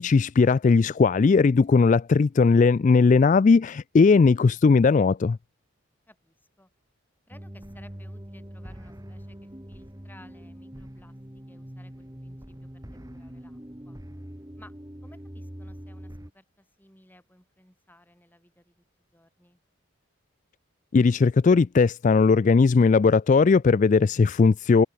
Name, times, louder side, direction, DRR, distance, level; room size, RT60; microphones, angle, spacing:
voice 1, 0.0-5.4 20.9-24.8, left 4 dB, 35° left, 0.3 m, -18 dB
voice 2, 6.1-6.7 7.3-13.6 13.8-14.0 14.6-14.8 15.0-18.8 19.1-19.6, left 1 dB, 10° left, 7.1 m, -57 dB
sound 1, 7.3-16.3, equal, 15° right, 1.8 m, -43 dB
head